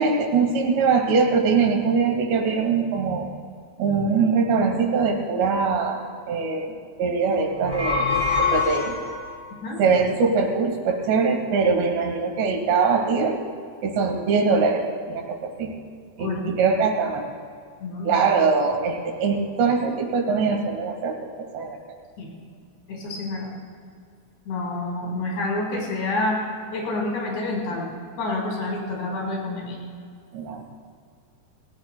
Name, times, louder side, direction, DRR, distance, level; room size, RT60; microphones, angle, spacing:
voice 1, 0.0-3.3 3.8-6.0 6.3-6.7 7.0-8.1 8.4-9.0 9.8-13.4 13.8-15.7 16.2-17.3 18.1-21.8 30.3-30.6, right 5 dB, 85° right, 2 dB, 3.9 m, -22 dB
sound 1, 7.5-9.4, left 4 dB, 30° left, 0.8 m, -24 dB
voice 2, 17.8-18.2 22.2-22.3 22.9-23.5 24.5-26.4 26.7-27.8 28.2-29.8, left 2 dB, 80° left, -2 dB, 6.6 m, -28 dB
29.0 x 17.5 x 2.2 m, 2.2 s
omnidirectional pair, 4.9 m